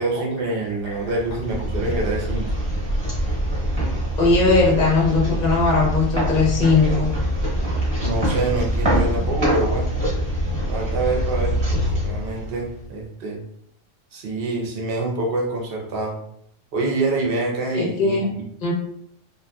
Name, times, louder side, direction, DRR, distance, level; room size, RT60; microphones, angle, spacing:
voice 1, 0.0-2.5 8.0-9.9 10.7-13.4 14.1-16.2 16.7-18.5, right 2 dB, 55° right, 0 dB, 0.8 m, -26 dB
sound 1, 0.9-12.9, equal, 25° right, 0.8 m, -24 dB
voice 2, 4.2-7.1 17.7-18.2 18.6-18.7, left 3 dB, 45° left, -3 dB, 0.7 m, -19 dB
2.6 x 2.5 x 2.2 m, 0.70 s
omnidirectional pair, 1.3 m